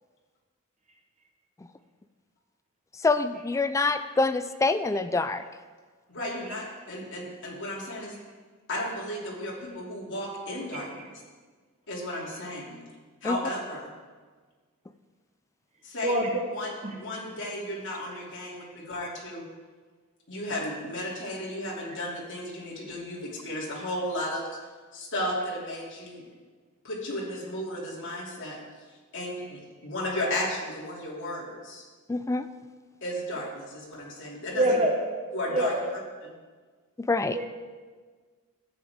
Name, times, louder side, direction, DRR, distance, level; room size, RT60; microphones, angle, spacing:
voice 1, 3.0-5.4 13.2-13.4 32.1-32.5 37.0-37.4, left 3 dB, 15° left, 11 dB, 0.3 m, -25 dB
voice 2, 6.1-8.1 8.7-11.1 11.9-12.8 13.2-13.9 15.8-16.2 16.5-19.4 20.3-24.5 24.9-26.3 26.8-28.8 29.1-31.8 33.0-34.8 35.3-35.7 36.2-36.3, left 1 dB, 60° left, -4 dB, 2.7 m, -34 dB
voice 3, 16.0-16.4 16.8-16.9 34.5-34.9 35.5-35.8 37.3-37.5, right 1 dB, 30° right, 1 dB, 1.1 m, -25 dB
13.5 x 7.9 x 3.6 m, 1.5 s
head